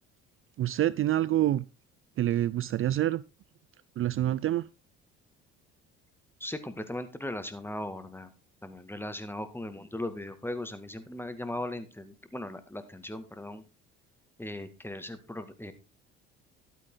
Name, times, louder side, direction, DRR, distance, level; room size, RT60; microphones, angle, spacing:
voice 1, 0.6-1.6 2.2-3.2 4.0-4.7, right 13 dB, 45° right, 0.5 m, -26 dB
voice 2, 6.4-8.3 8.6-13.6 14.4-15.7, left 1 dB, 5° left, 2.0 m, -38 dB
12.0 x 9.0 x 3.8 m
supercardioid pair, 70°, 30 cm